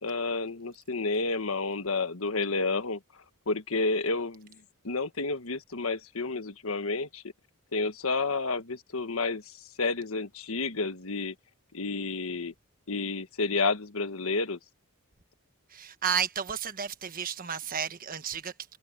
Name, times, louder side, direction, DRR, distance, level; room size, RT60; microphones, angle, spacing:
voice 1, 0.0-3.0 3.5-4.5 4.8-7.2 7.7-11.3 11.7-12.5 12.9-14.6, left 3 dB, 75° left, 1.4 m, -30 dB
voice 2, 15.7-18.5, right 7 dB, 40° right, 1.3 m, -32 dB
head